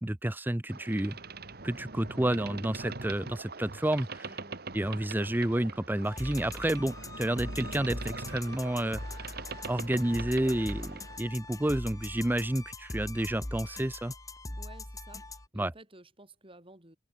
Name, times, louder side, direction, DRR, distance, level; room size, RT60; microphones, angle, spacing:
voice 1, 0.0-1.2 1.6-4.3 4.7-9.4 9.7-14.1 15.5-15.7, right 1 dB, 10° right, 0.6 m, -30 dB
Boat Water vehicle, 0.7-11.2, right 3 dB, 55° right, 2.2 m, -43 dB
voice 2, 4.2-4.6 14.6-17.0, right 2 dB, 30° right, 7.1 m, -53 dB
sound 1, 6.0-15.5, left 2 dB, 20° left, 1.7 m, -41 dB
open air
head